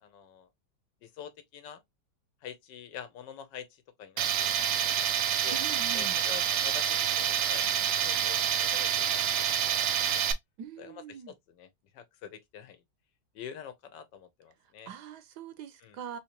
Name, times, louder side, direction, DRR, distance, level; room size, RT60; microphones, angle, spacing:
voice 1, 0.0-0.5 1.0-1.8 2.4-4.7 5.0-5.1 5.4-5.6 5.9-10.2 10.8-11.7 11.9-12.8 13.3-14.9 15.8-16.0, left 8 dB, 75° left, 1.4 m, -46 dB
Tools, 4.2-10.3, right 9 dB, 85° right, 0.7 m, -27 dB
voice 2, 5.5-6.2 10.6-11.3 14.9-16.2, right 8 dB, 70° right, 1.1 m, -43 dB
3.8 x 2.8 x 2.8 m
omnidirectional pair, 2.0 m